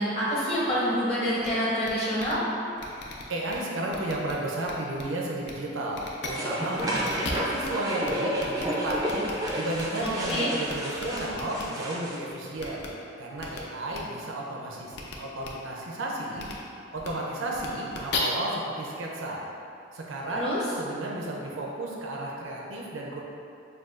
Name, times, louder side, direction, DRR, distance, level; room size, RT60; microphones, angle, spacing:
voice 1, 0.0-2.4 10.0-10.5 20.3-20.6, equal, 30° left, -9 dB, 0.9 m, -27 dB
sound 1, 1.4-1.5 1.8-1.9 2.2-2.3 2.8-3.5 3.9-4.3 4.6-5.0 5.4-5.5 5.9-6.3 6.7-7.7 8.0-8.1 8.4-10.3 10.7-11.6 12.6-12.9 13.4-13.6 13.9-14.0 14.9-15.1 15.4-15.5 16.4-16.5 17.0-17.1 17.5-18.2, left 5 dB, 60° left, 0.5 m, -37 dB
voice 2, 3.3-9.0 9.3-12.8 13.2-16.5 16.9-19.4 19.9-23.2, right 1 dB, 85° right, -3 dB, 0.6 m, -33 dB
sound 2, 6.3-12.2, equal, 20° right, 0.4 m, -31 dB
6.3 x 2.3 x 2.4 m, 2.7 s
head